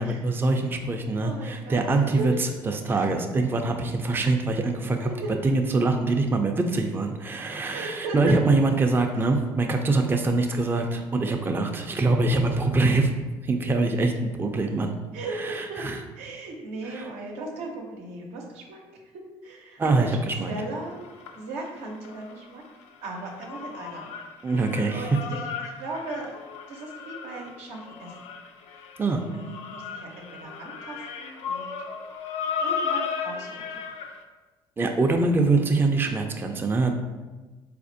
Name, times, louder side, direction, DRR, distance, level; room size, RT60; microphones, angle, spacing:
voice 1, 0.0-5.1 5.4-13.1 13.4-14.9 15.4-16.0 17.0-17.1 19.8-20.5 24.4-25.1 29.0-29.2 34.8-36.9, right 3 dB, 20° right, 4 dB, 0.4 m, -24 dB
voice 2, 1.2-2.4 2.9-3.1 5.0-5.1 7.7-8.4 9.1-9.3 12.5-12.7 15.1-15.9 16.2-20.2 20.5-21.0 21.3-22.6 23.0-24.1 24.5-25.4 25.8-26.3 26.7-28.2 28.7-28.9 29.3-31.7 32.6-33.8, right 2 dB, 85° right, 0 dB, 0.7 m, -37 dB
sound 1, 20.4-22.4 22.7-34.2, left 6 dB, 75° left, 0.4 m, -35 dB
4.1 x 2.5 x 2.6 m, 1.2 s
supercardioid pair, 75°, 11 cm